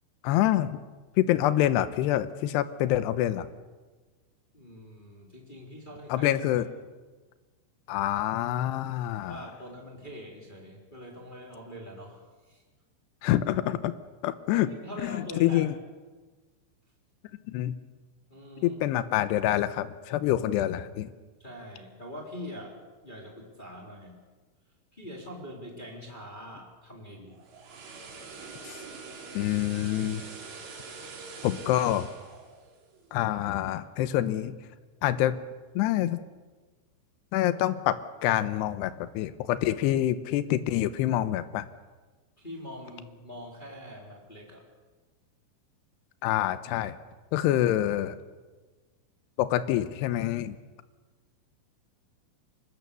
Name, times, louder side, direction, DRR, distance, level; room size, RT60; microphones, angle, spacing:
voice 1, 0.2-0.7 1.2-3.5 6.1-6.7 7.9-9.4 13.2-13.9 14.2-14.7 15.0-15.7 17.5-17.8 18.6-21.1 28.6-28.8 29.3-30.2 31.4-32.1 33.1-34.5 35.0-35.4 35.8-36.2 37.3-41.7 46.2-47.0 47.3-48.2 49.4-50.6, left 13 dB, 75° left, 12 dB, 2.6 m, -26 dB
voice 2, 4.5-6.3 9.2-12.6 14.5-15.7 18.3-18.8 21.4-22.8 23.0-24.1 24.9-27.4 42.4-44.6, equal, 10° left, -1 dB, 3.3 m, -43 dB
sound 1, 27.3-33.5 33.8-34.0, right 4 dB, 60° right, 5.7 m, -44 dB
25.0 x 22.0 x 6.9 m, 1.3 s
omnidirectional pair, 5.7 m